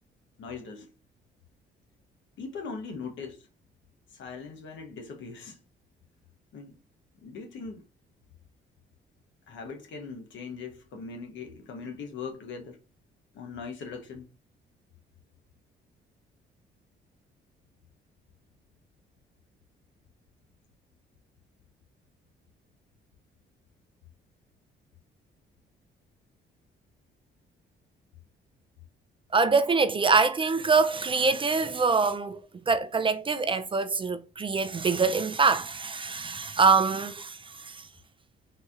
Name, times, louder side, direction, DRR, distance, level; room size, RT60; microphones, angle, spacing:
voice 1, 0.4-0.9 2.4-3.5 4.1-5.6 6.5-6.7 7.1-7.8 9.5-12.8 13.3-14.3, left 5 dB, 70° left, 0.9 m, -40 dB
voice 2, 29.3-32.4 32.7-37.9, right 4 dB, 25° right, 0.3 m, -24 dB
3.9 x 2.8 x 2.4 m
cardioid pair, 90°, 20 cm